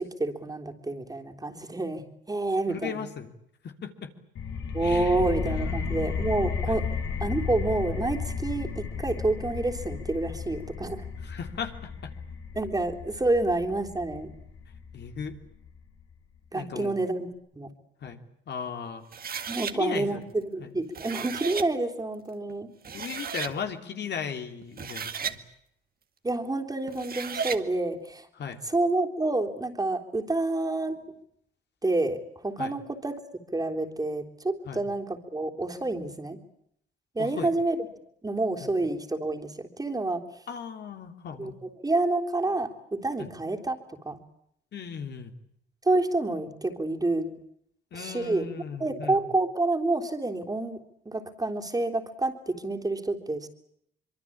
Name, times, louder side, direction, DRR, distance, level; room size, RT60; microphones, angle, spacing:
voice 1, 0.0-3.1 4.7-6.9 7.2-11.0 12.6-14.3 16.5-17.7 19.5-22.7 26.2-28.3 28.6-31.0 31.8-33.2 33.5-36.4 37.2-37.9 38.2-40.2 41.4-43.8 44.1-44.2 45.8-47.3 47.9-48.5 48.8-53.5, right 2 dB, 20° right, 3 dB, 3.5 m, -28 dB
voice 2, 2.7-3.3 3.6-4.1 4.8-5.9 6.7-6.8 11.2-12.1 14.9-15.4 16.5-16.9 18.0-19.0 19.7-20.3 20.6-20.7 22.9-25.4 28.4-28.6 32.6-32.7 34.6-34.8 37.2-37.5 38.6-38.7 40.5-41.6 43.2-43.3 44.7-45.3 47.9-49.2, left 6 dB, 60° left, 6 dB, 3.2 m, -37 dB
sound 1, 4.4-15.8, left 5 dB, 75° left, 4.7 m, -34 dB
sound 2, 19.1-19.7 20.8-21.7 22.5-22.6 22.8-23.5 24.6-25.4 26.9-27.6, right 7 dB, 50° right, 2.1 m, -34 dB
25.0 x 23.5 x 8.7 m, 0.73 s
cardioid pair, 90°, 20 cm